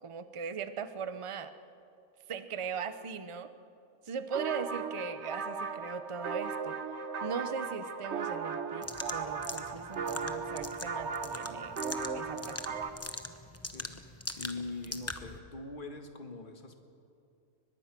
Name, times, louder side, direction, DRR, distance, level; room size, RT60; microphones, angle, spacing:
voice 1, 0.0-1.5 2.3-3.5 4.0-6.8 7.2-11.8 12.1-12.6 12.8-12.9, right 6 dB, 30° right, 11 dB, 0.6 m, -39 dB
sound 1, 4.3-12.9, right 5 dB, 50° right, 1.2 m, -37 dB
sound 2, 8.8-15.4, left 2 dB, 15° left, 0.7 m, -42 dB
voice 2, 13.7-14.1 14.4-16.8, left 3 dB, 35° left, 5 dB, 1.7 m, -42 dB
23.5 x 20.5 x 6.0 m, 2.6 s
omnidirectional pair, 1.7 m